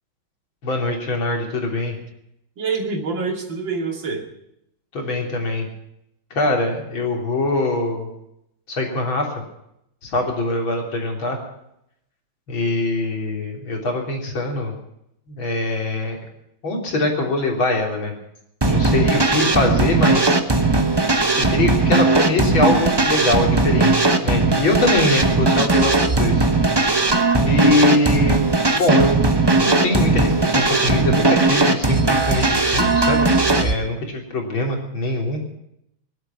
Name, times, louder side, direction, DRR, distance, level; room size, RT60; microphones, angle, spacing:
voice 1, 0.6-1.9 4.9-5.7 6.3-8.1 8.7-9.3 10.0-11.4 12.5-14.7 15.3-16.2 16.6-18.1 18.6-20.3 21.4-26.5 27.4-28.4 28.7-29.2 29.5-35.4, left 2 dB, 80° left, 1 dB, 4.2 m, -22 dB
voice 2, 2.6-4.2 18.6-19.0, right 4 dB, 70° right, 2 dB, 3.3 m, -26 dB
sound 1, 18.6-33.7, right 3 dB, 15° right, 0.8 m, -18 dB
21.0 x 12.0 x 5.7 m, 0.78 s
omnidirectional pair, 2.2 m